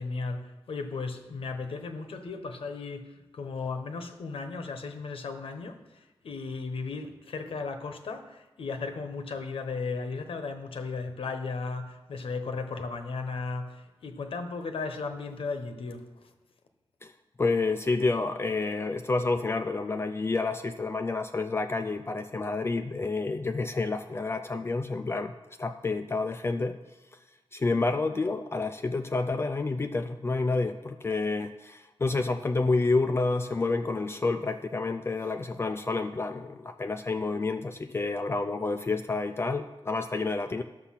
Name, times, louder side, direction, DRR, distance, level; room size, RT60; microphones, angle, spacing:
voice 1, 0.0-16.3, left 4 dB, 75° left, 1.0 m, -36 dB
voice 2, 17.4-25.3 25.6-26.8 27.5-40.6, left 3 dB, 25° left, 0.4 m, -29 dB
11.5 x 6.9 x 5.7 m
wide cardioid pair, 160°, 10 cm